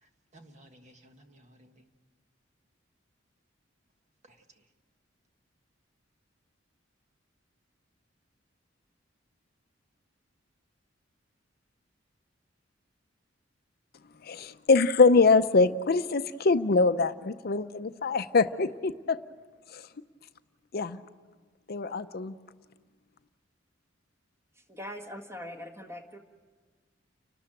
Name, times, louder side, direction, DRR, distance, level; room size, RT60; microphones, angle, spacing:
voice 1, 0.0-1.9 4.2-4.6, right 1 dB, 40° right, 1.5 m, -57 dB
voice 2, 14.2-19.2 19.7-19.9 20.7-21.0 21.7-22.4, left 4 dB, 55° left, 0.6 m, -24 dB
voice 3, 24.5-26.2, left 1 dB, 15° right, 1.7 m, -42 dB
29.5 x 12.5 x 8.9 m
head